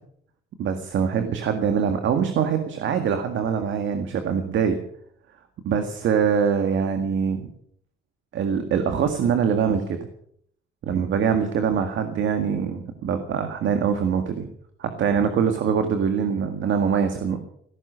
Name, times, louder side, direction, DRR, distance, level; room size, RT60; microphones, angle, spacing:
voice 1, 0.6-4.8 5.7-7.4 8.3-10.1 10.8-14.5 14.8-17.4, right 7 dB, 75° right, 7 dB, 1.9 m, -23 dB
16.5 x 13.5 x 6.3 m, 0.67 s
cardioid pair, 90°, 20 cm